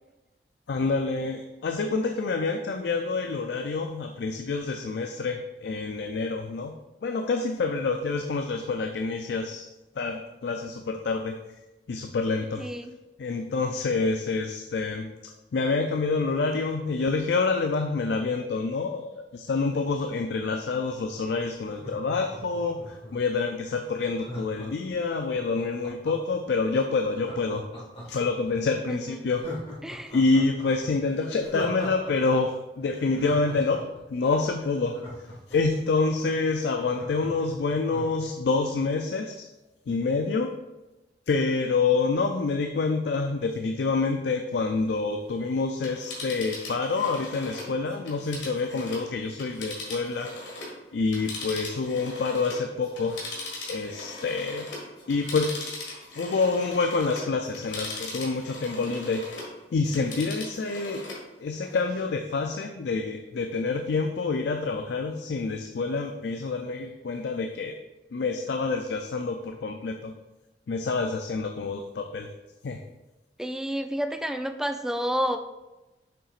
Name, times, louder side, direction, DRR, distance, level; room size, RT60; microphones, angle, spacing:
voice 1, 0.7-6.7 7.0-9.7 10.0-11.4 11.9-12.7 13.2-27.6 28.1-29.4 30.1-39.5 39.9-40.6 41.3-50.4 50.9-53.2 53.7-54.7 55.1-55.6 56.2-59.3 59.7-61.1 61.4-67.8 68.1-70.1 70.7-72.3 72.6-72.8, left 4 dB, 65° left, 5 dB, 0.4 m, -27 dB
voice 2, 12.6-12.9 28.9-29.3 29.8-30.1 73.4-75.4, equal, 5° right, 6 dB, 0.3 m, -30 dB
Laughter, 21.7-23.3 24.2-26.4 27.1-28.5 28.9-29.0 29.3-32.1 32.4-32.5 32.9-35.8 36.2-36.3 36.5-38.2 38.6-38.7, equal, 30° left, 1.5 m, -40 dB
Telephone, 45.7-50.8 51.1-59.5 59.8-61.3 61.6-61.7, left 2 dB, 85° left, 1.6 m, -39 dB
7.0 x 5.6 x 2.5 m, 1.1 s
head